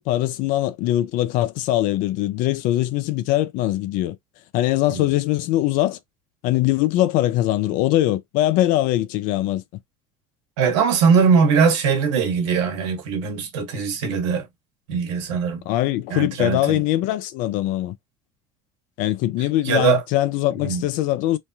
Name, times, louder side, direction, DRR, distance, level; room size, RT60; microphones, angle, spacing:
voice 1, 0.0-4.2 4.5-6.0 6.4-9.6 15.7-18.0 19.0-21.4, left 15 dB, 65° left, 0.5 m, -22 dB
voice 2, 10.6-14.5 14.9-15.6 16.1-16.8 19.6-20.0 20.6-20.9, right 6 dB, 80° right, 1.2 m, -20 dB
3.2 x 2.2 x 2.7 m
hypercardioid pair, 75°, 15 cm